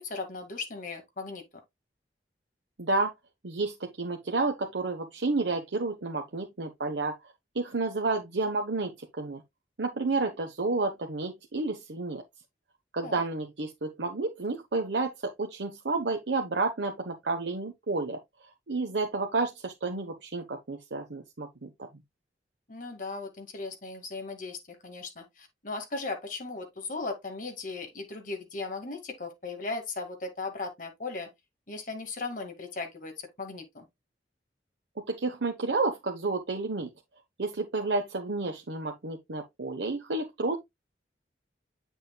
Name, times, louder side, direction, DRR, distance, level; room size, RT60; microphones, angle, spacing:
voice 1, 0.0-1.4 13.0-13.2 22.7-31.3 31.7-33.9, left 3 dB, 50° left, 2.0 m, -37 dB
voice 2, 2.8-3.1 3.4-7.1 7.5-9.4 9.8-12.2 12.9-21.9 35.0-36.9 37.4-40.6, right 3 dB, 80° right, 1.0 m, -31 dB
8.1 x 6.4 x 2.3 m
head